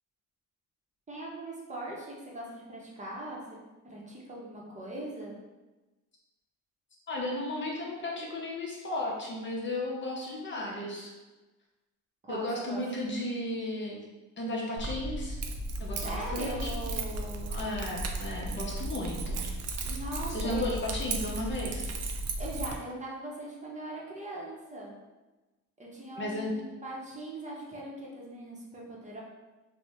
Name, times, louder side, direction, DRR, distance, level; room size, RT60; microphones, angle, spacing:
voice 1, 1.1-3.6 3.9-5.3 12.2-13.1 16.0-17.5 19.8-20.7 22.4-24.9 25.8-29.2, right 1 dB, 25° right, -4 dB, 0.7 m, -40 dB
voice 2, 7.1-11.1 12.3-14.1 14.4-15.4 15.8-16.8 17.5-19.5 20.3-21.9 26.2-26.5, left 1 dB, 40° left, -2 dB, 0.7 m, -34 dB
Keys jangling, 14.8-22.8, right 2 dB, 55° right, 0.4 m, -35 dB
2.8 x 2.1 x 3.4 m, 1.1 s
cardioid pair, 90°, 30 cm